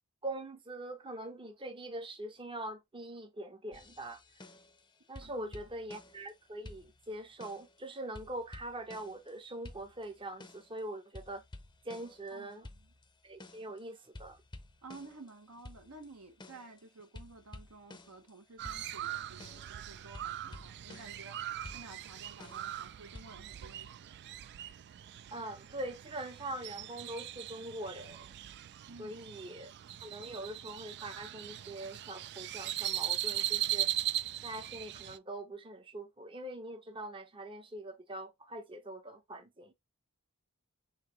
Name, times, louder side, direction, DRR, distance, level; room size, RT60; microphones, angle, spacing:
voice 1, 0.2-4.2 5.1-11.4 11.8-12.7 13.2-14.4 25.3-28.4 29.0-29.7 30.0-33.9 34.4-39.7, right 1 dB, 25° right, 0.7 m, -43 dB
sound 1, 3.7-4.8 5.1-6.4 6.6-7.8 8.1-9.4 9.6-10.8 11.1-13.8 14.1-18.3 18.6-21.3 21.6-23.2, left 2 dB, 20° left, 0.6 m, -52 dB
voice 2, 5.2-5.5 12.3-12.9 14.8-24.2 28.9-29.2, right 3 dB, 75° right, 1.2 m, -53 dB
Crow, 18.6-35.2, right 13 dB, 50° right, 0.3 m, -39 dB
5.6 x 2.9 x 3.0 m
head